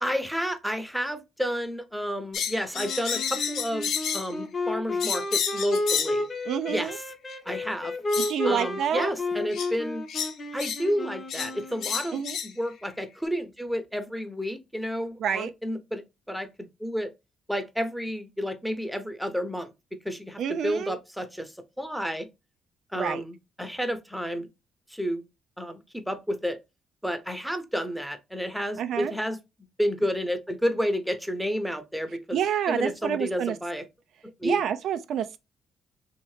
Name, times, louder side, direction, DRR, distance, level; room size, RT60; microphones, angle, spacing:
voice 1, 0.0-6.3 6.7-7.0 7.5-7.9 8.4-10.0 10.5-16.0 16.3-17.1 17.5-19.7 20.0-22.3 22.9-24.5 24.9-25.2 25.6-26.6 27.0-29.4 29.8-32.4 32.7-33.8 34.4-34.6, equal, ahead, 0.6 m, -31 dB
sound 1, 2.3-4.3 5.0-6.2 7.3-7.4 8.1-8.3 9.5-9.7 10.1-10.8 11.3-11.5 11.8-12.5, left 7 dB, 75° left, 0.7 m, -30 dB
Wind instrument woodwind instrument, 2.7-12.2, left 2 dB, 35° left, 0.7 m, -32 dB
voice 2, 6.5-7.0 8.2-9.1 12.1-12.4 15.2-15.5 20.4-21.0 22.9-23.2 28.8-29.1 32.3-33.6 34.4-35.4, right 9 dB, 75° right, 0.3 m, -28 dB
3.0 x 2.8 x 3.0 m
cardioid pair, 90°, 0 cm